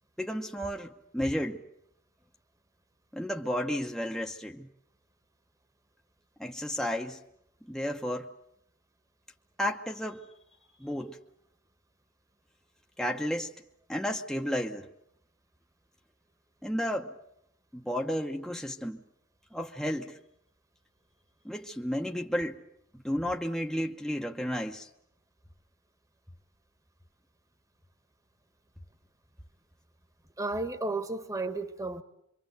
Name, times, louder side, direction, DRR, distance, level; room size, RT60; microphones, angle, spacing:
voice 1, 0.2-1.6 3.1-4.7 6.4-7.2 7.7-8.3 9.6-10.2 10.8-11.2 13.0-13.5 13.9-14.9 16.6-17.2 17.7-19.0 19.5-20.2 21.4-22.6 22.9-24.9, equal, ahead, 0.9 m, -32 dB
voice 2, 30.4-32.0, right 2 dB, 15° right, 1.4 m, -33 dB
26.0 x 24.5 x 8.0 m
head